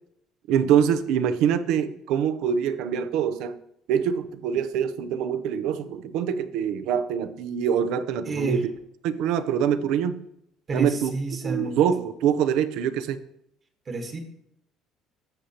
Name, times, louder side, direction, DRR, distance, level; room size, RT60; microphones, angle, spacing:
voice 1, 0.5-3.6 3.9-8.7 9.0-10.2 10.7-11.1 11.4-13.2, right 8 dB, 75° right, 11 dB, 0.6 m, -24 dB
voice 2, 8.2-8.6 10.7-11.8 13.9-14.2, right 3 dB, 35° right, 5 dB, 1.3 m, -29 dB
13.0 x 6.2 x 2.9 m, 0.76 s
cardioid pair, 110°, 0 cm